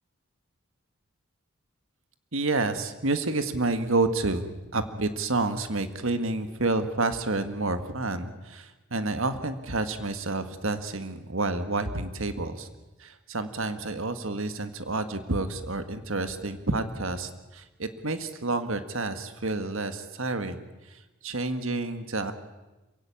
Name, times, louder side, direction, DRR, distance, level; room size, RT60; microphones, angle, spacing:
voice 1, 2.3-12.7 13.0-22.3, right 2 dB, 65° right, 9 dB, 1.8 m, -29 dB
27.0 x 16.5 x 8.9 m, 1.1 s
head